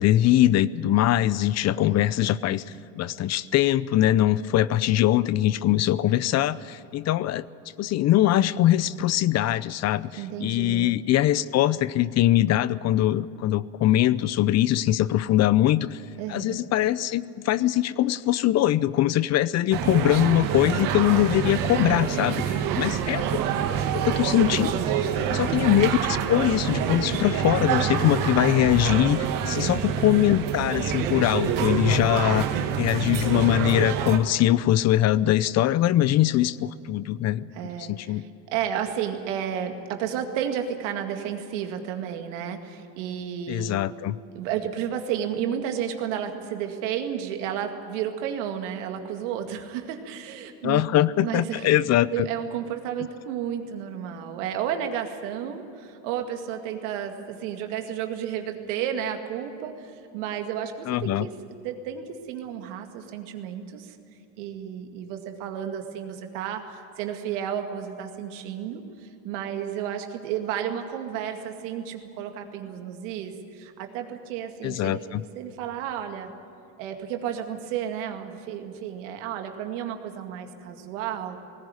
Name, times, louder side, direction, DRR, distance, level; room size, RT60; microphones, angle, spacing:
voice 1, 0.0-2.6 2.9-7.5 7.8-16.0 16.3-23.3 23.9-24.8 25.3-32.5 32.8-37.5 37.8-38.2 43.5-44.2 50.6-52.3 60.9-61.3 74.6-75.2, left 13 dB, 45° left, 18 dB, 0.6 m, -22 dB
voice 2, 1.8-2.3 10.2-10.9 16.2-16.6 22.5-23.2 25.2-25.7 29.6-29.8 32.2-32.4 37.5-43.8 44.3-50.9 51.2-51.8 52.1-61.3 61.6-64.0 64.4-75.0 75.4-76.3 76.8-81.4, right 9 dB, 85° right, 5 dB, 2.2 m, -32 dB
sound 1, 19.7-34.2, right 8 dB, 60° right, 1.9 m, -26 dB
19.0 x 17.0 x 9.7 m, 2.7 s
supercardioid pair, 105°, 36 cm